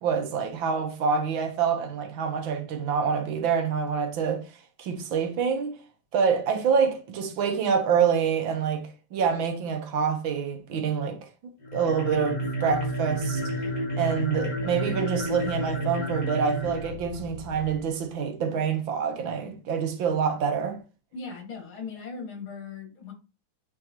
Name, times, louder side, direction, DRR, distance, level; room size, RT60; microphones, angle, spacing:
voice 1, 0.0-4.4 4.8-5.8 6.1-11.2 11.7-13.4 14.0-20.8, right 6 dB, 70° right, 1.7 m, -26 dB
sound 1, 11.6-17.9, right 1 dB, 55° left, 4.0 m, -31 dB
voice 2, 21.1-23.1, left 5 dB, 75° left, 2.6 m, -38 dB
8.9 x 4.0 x 2.8 m
omnidirectional pair, 2.3 m